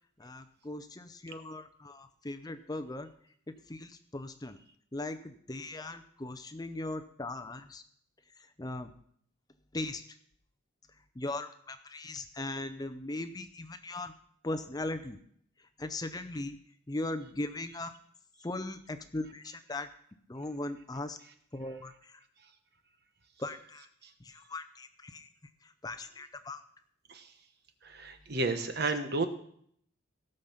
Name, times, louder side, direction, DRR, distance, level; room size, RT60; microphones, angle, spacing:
voice 1, 0.2-3.1 3.7-4.6 4.9-7.8 8.6-8.9 9.7-10.0 11.2-14.1 14.4-15.2 15.8-16.6 16.9-17.9 18.4-19.9 20.3-21.2 21.5-22.2 23.4-23.9 24.2-25.3 25.6-26.6, left 2 dB, 20° left, 9 dB, 0.6 m, -39 dB
voice 2, 27.8-29.3, right 3 dB, 50° right, 8 dB, 1.2 m, -32 dB
17.0 x 6.6 x 5.8 m, 0.65 s
head